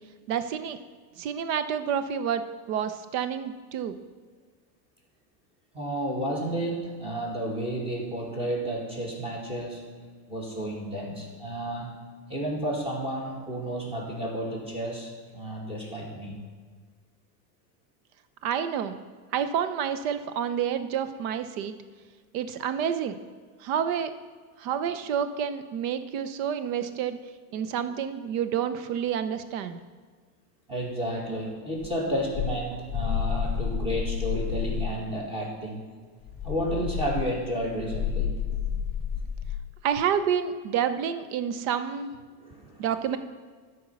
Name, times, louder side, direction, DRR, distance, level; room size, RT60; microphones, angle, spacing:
voice 1, 0.3-0.8 1.2-2.4 2.7-3.9 18.4-19.0 19.3-21.7 22.3-23.2 23.6-24.1 24.6-27.2 27.5-29.8 39.8-42.1 42.8-43.2, right 8 dB, 65° right, 11 dB, 0.8 m, -29 dB
voice 2, 5.7-10.0 10.3-16.4 30.7-35.8 36.4-38.6 42.3-42.9, right 1 dB, 15° right, -2 dB, 2.1 m, -32 dB
sound 1, 31.8-35.0 36.2-39.7, left 7 dB, 25° left, 0.5 m, -30 dB
12.5 x 4.6 x 6.1 m, 1.6 s
supercardioid pair, 155°, 43 cm